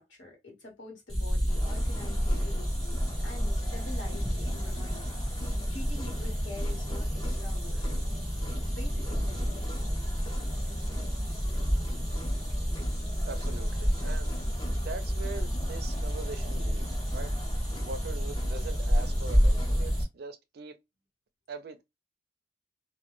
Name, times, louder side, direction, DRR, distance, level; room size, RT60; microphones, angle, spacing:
voice 1, 0.0-5.2 5.7-7.8 8.5-9.7, left 2 dB, 70° left, 1.1 m, -46 dB
sound 1, 1.1-20.0, equal, 5° left, 0.9 m, -30 dB
sound 2, 1.5-20.0, left 1 dB, 25° left, 0.4 m, -45 dB
voice 2, 13.2-14.4 14.8-16.9 17.1-17.4 17.8-20.8 21.5-21.8, right 4 dB, 55° right, 0.4 m, -42 dB
2.1 x 2.1 x 2.9 m
head